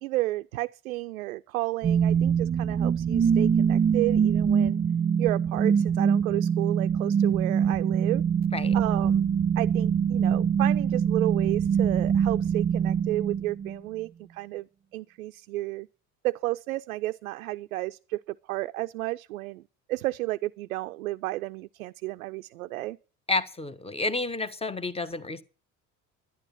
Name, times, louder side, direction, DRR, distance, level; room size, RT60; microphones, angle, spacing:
voice 1, 0.0-4.8 5.2-8.2 8.7-9.3 9.6-14.7 14.9-15.9 16.2-19.6 19.9-23.0, right 18 dB, 75° right, 0.5 m, -32 dB
sound 1, 1.8-13.8, right 7 dB, 25° right, 0.6 m, -24 dB
voice 2, 23.3-25.4, left 3 dB, 15° left, 1.1 m, -30 dB
11.5 x 10.5 x 5.7 m
figure-of-eight pair, 60°, 43 cm